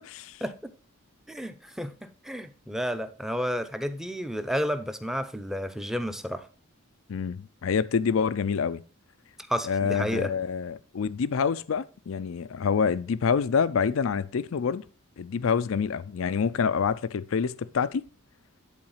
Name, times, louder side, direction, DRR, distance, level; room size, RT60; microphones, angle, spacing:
voice 1, 1.3-6.5 9.5-10.3, equal, ahead, 0.6 m, -31 dB
voice 2, 7.1-8.8 9.6-14.8 15.2-18.0, left 6 dB, 65° left, 0.4 m, -27 dB
10.5 x 4.0 x 5.6 m
head